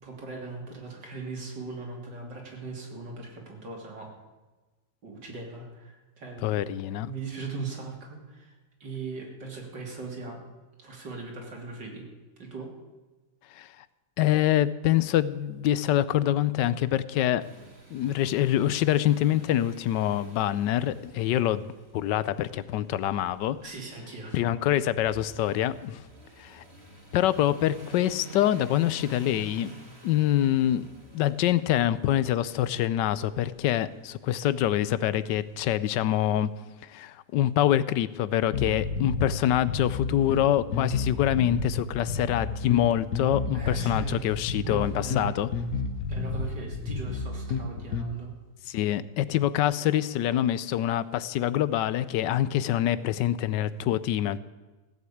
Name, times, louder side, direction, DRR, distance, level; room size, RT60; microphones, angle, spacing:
voice 1, 0.0-4.1 5.0-6.7 7.0-8.5 8.8-10.4 10.8-12.0 12.4-12.7 23.6-24.4 43.5-45.4 46.1-48.3, right 4 dB, 75° right, 0 dB, 3.6 m, -39 dB
voice 2, 6.4-7.1 13.5-13.7 14.2-17.4 17.9-23.6 24.3-26.1 26.4-26.6 27.1-29.7 30.0-36.5 36.9-45.5 48.7-54.4, left 12 dB, 80° left, 16 dB, 1.2 m, -25 dB
sound 1, 17.4-36.3, right 2 dB, 35° right, 2.7 m, -50 dB
sound 2, 38.5-48.1, left 4 dB, 60° left, 1.5 m, -31 dB
16.0 x 8.1 x 8.6 m, 1.2 s
omnidirectional pair, 1.9 m